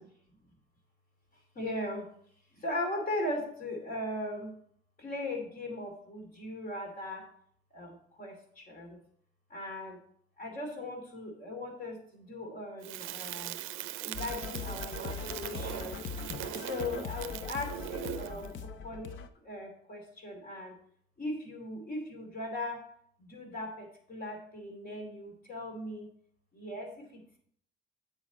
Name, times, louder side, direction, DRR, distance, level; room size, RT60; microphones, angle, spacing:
voice 1, 1.5-2.1 2.6-4.5 5.0-7.2 7.7-9.0 9.5-10.0 10.4-13.6 14.0-16.0 16.7-19.1 19.4-20.7 21.2-22.8 23.2-26.1 26.5-27.4, left 1 dB, 45° left, 2 dB, 2.8 m, -38 dB
Crackle, 12.8-18.5, right 14 dB, 90° right, 0.5 m, -40 dB
sound 1, 14.1-19.3, left 6 dB, 70° left, 0.7 m, -40 dB
8.1 x 7.2 x 4.1 m, 0.63 s
cardioid pair, 90°, 20 cm